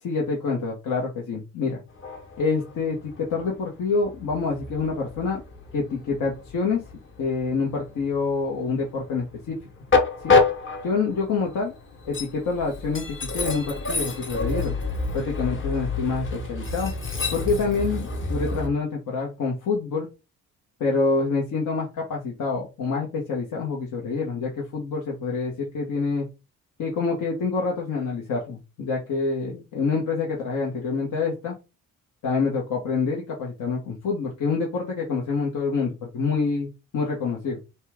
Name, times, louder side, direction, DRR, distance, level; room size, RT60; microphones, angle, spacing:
voice 1, 0.0-1.8 2.4-5.4 5.7-6.8 7.2-9.6 10.2-10.4 10.8-11.7 12.0-14.7 15.1-16.9 17.3-20.1 20.8-26.3 26.8-31.5 32.2-37.6, left 4 dB, 70° left, -2 dB, 1.3 m, -27 dB
Train, 1.9-18.7, left 3 dB, 35° left, 1.1 m, -28 dB
5.5 x 2.4 x 3.6 m, 0.28 s
cardioid pair, 95°, 33 cm